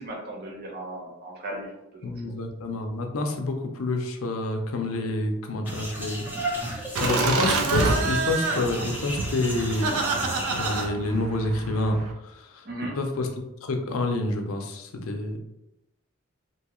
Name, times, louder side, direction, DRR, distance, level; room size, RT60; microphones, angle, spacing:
voice 1, 0.0-2.3 12.6-12.9, right 1 dB, 50° right, -2 dB, 0.7 m, -37 dB
voice 2, 2.0-9.9 10.5-12.7 13.0-15.4, left 2 dB, 75° left, 4 dB, 0.5 m, -28 dB
sound 1, 5.7-10.9, right 1 dB, 10° right, 0.4 m, -34 dB
Laughter, 6.9-12.1, right 3 dB, 85° right, 0.4 m, -27 dB
2.8 x 2.3 x 2.9 m, 0.88 s
head